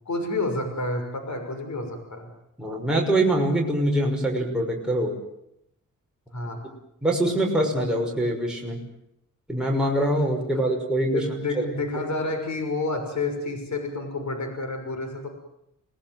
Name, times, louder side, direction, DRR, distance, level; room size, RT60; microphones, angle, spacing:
voice 1, 0.0-2.3 6.3-6.7 11.1-15.3, left 2 dB, 55° left, 5 dB, 6.2 m, -29 dB
voice 2, 2.6-5.1 7.0-8.8 9.5-11.2 11.6-11.7, right 1 dB, ahead, -2 dB, 6.0 m, -24 dB
28.0 x 19.0 x 9.2 m, 0.83 s
wide cardioid pair, 110°, 33 cm